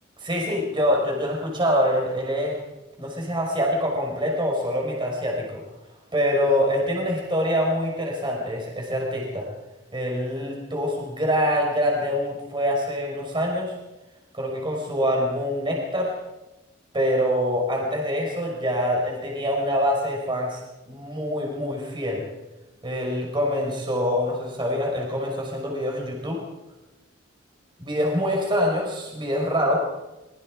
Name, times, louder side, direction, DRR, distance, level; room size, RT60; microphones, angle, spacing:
voice 1, 0.2-2.6 3.0-5.6 6.1-9.5 9.9-13.7 14.3-16.1 16.9-22.2 22.8-26.4 27.8-29.8, equal, 25° right, -1 dB, 5.6 m, -25 dB
24.5 x 22.5 x 5.0 m, 1.0 s
head